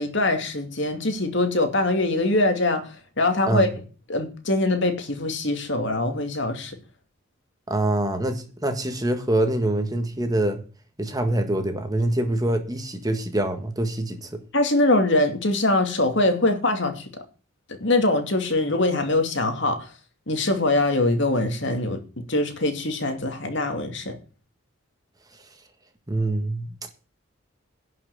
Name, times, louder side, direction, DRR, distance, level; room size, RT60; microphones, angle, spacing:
voice 1, 0.0-3.7 4.1-6.7 14.5-17.1 17.8-19.9 20.3-24.1, left 2 dB, 60° left, 2.6 m, -23 dB
voice 2, 7.7-10.6 11.0-14.4 26.1-26.7, right 1 dB, 20° right, 1.5 m, -25 dB
11.0 x 5.9 x 8.4 m
head